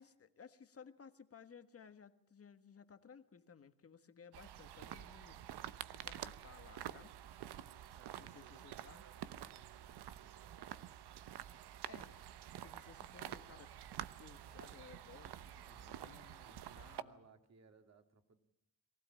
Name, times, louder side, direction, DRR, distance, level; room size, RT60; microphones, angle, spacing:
voice 1, 0.0-5.4 5.9-7.1 8.2-9.0 11.9-13.7 14.2-17.3, left 6 dB, 35° left, 10 dB, 1.5 m, -59 dB
sound 1, 4.3-17.0, right 11 dB, 70° right, 1.0 m, -49 dB
voice 2, 7.9-8.6 8.9-10.8 16.4-18.4, right 5 dB, 40° right, 7 dB, 2.6 m, -65 dB
23.5 x 16.0 x 8.9 m, 0.81 s
cardioid pair, 120°, 40 cm